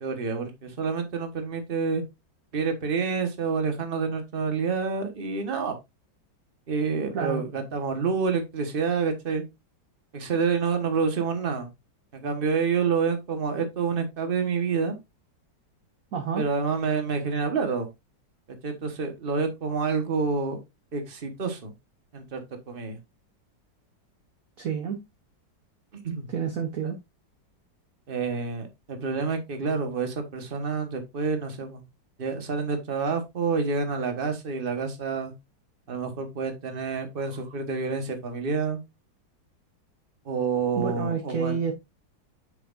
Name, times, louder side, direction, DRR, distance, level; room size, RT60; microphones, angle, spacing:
voice 1, 0.0-2.0 2.5-5.7 6.7-9.4 10.1-11.7 12.1-15.0 16.3-17.9 18.6-20.6 20.9-21.7 22.1-23.0 26.0-26.3 26.8-26.9 28.1-31.8 32.2-35.3 35.9-38.8 40.2-41.6, right 5 dB, 35° right, 1.3 m, -28 dB
voice 2, 7.1-7.4 16.1-16.5 24.6-25.0 26.3-27.0 40.7-41.7, right 6 dB, 55° right, 1.1 m, -29 dB
8.0 x 5.9 x 2.5 m
omnidirectional pair, 2.0 m